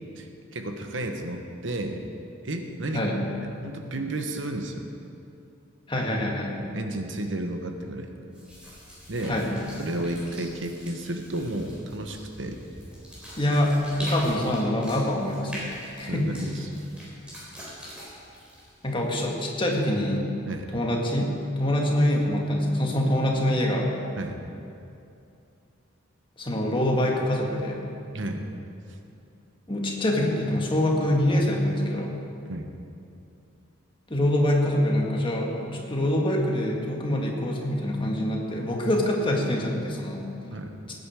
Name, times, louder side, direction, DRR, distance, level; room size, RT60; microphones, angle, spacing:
voice 1, 0.2-2.0 2.4-3.0 3.4-4.8 6.6-8.1 9.1-9.4 9.8-12.6 14.0-14.1 16.0-16.8 20.5-20.7 24.2-24.4 28.1-28.4 32.5-32.7 40.5-40.7, right 1 dB, 65° right, 5 dB, 1.1 m, -32 dB
voice 2, 5.9-6.6 9.3-9.5 13.4-13.8 14.0-15.6 16.0-16.4 18.8-20.3 20.7-21.3 21.6-24.0 26.4-27.8 29.7-32.2 34.1-40.3, left 1 dB, 25° left, 0 dB, 1.7 m, -25 dB
sound 1, 8.3-19.5, equal, 5° right, 4.1 m, -43 dB
19.0 x 9.5 x 4.8 m, 2.6 s
head